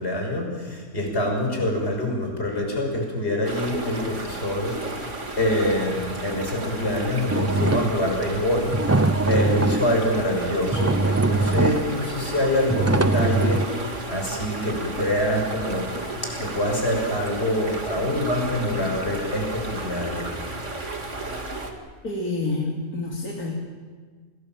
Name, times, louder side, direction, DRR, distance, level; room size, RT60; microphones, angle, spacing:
voice 1, 0.0-15.9 16.2-20.3, left 1 dB, 45° left, 1 dB, 6.4 m, -25 dB
sound 1, 3.4-21.7, right 2 dB, 50° right, 2.9 m, -33 dB
sound 2, 7.3-8.1 8.7-10.0 10.5-10.6 10.7-12.0 12.7-13.7, right 2 dB, 20° right, 0.4 m, -22 dB
voice 2, 22.0-23.5, left 2 dB, 75° left, -2 dB, 3.3 m, -28 dB
28.5 x 20.0 x 7.6 m, 1.5 s
omnidirectional pair, 1.6 m